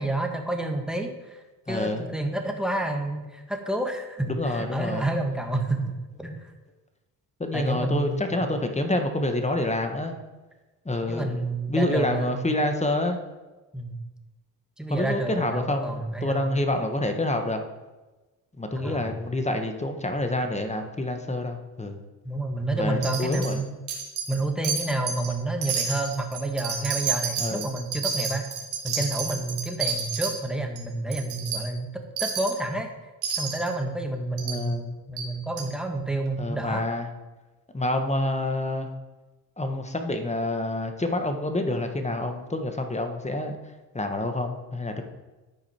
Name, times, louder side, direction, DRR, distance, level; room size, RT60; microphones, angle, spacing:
voice 1, 0.0-5.9 6.2-6.5 7.5-8.5 11.1-12.6 13.7-14.0 14.8-16.5 18.7-19.2 22.2-23.8 24.3-28.5 28.8-31.9 32.2-32.9 33.4-34.7 35.1-36.8, right 2 dB, ahead, 3 dB, 1.6 m, -29 dB
voice 2, 1.7-2.1 4.3-5.1 7.4-10.1 10.8-11.4 11.7-13.2 14.9-17.6 18.6-22.0 22.7-23.6 27.4-27.7 34.4-35.0 36.4-37.1 37.7-38.9 39.6-43.6 43.9-45.0, left 1 dB, 15° left, 5 dB, 1.4 m, -27 dB
Wind chime, 23.0-23.5 23.9-24.4 24.6-25.3 25.6-30.3 30.7-30.8 31.1-31.6 32.2-32.6 33.2-33.7 34.4-34.6 35.2-35.3 35.6-35.7, right 6 dB, 75° right, 2.1 m, -30 dB
12.0 x 5.1 x 4.5 m, 1.1 s
supercardioid pair, 60°, 46 cm